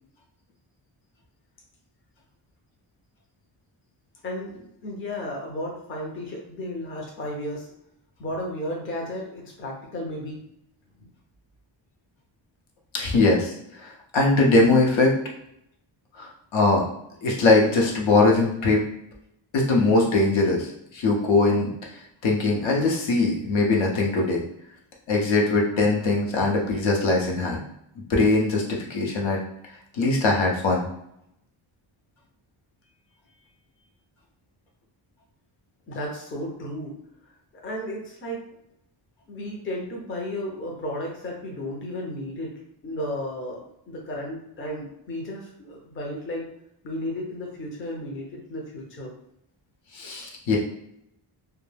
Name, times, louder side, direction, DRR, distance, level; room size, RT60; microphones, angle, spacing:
voice 1, 4.2-7.7 8.2-10.4 11.0-11.1 35.9-37.0 37.6-38.4 39.3-42.5 42.8-46.5 46.8-49.1, left 1 dB, 25° left, -1 dB, 0.5 m, -33 dB
voice 2, 12.9-13.5 13.8-15.2 16.2-16.8 17.2-18.8 19.5-21.7 22.2-24.4 25.1-27.6 28.1-29.4 29.9-30.9 49.9-50.6, left 3 dB, 70° left, -1 dB, 0.7 m, -21 dB
2.2 x 2.1 x 3.2 m, 0.77 s
wide cardioid pair, 150°, 49 cm